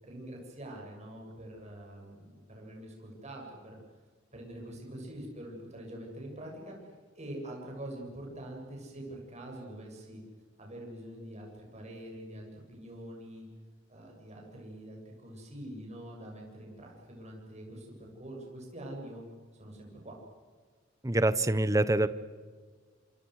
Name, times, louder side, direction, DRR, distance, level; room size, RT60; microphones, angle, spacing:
voice 1, 0.0-3.8 4.3-6.8 7.1-10.2 10.6-13.5 13.9-19.2 19.6-20.2, right 1 dB, 35° right, 0 dB, 7.5 m, -45 dB
voice 2, 21.0-22.1, right 2 dB, 15° right, 14 dB, 1.0 m, -25 dB
27.5 x 27.5 x 6.5 m, 1.5 s
head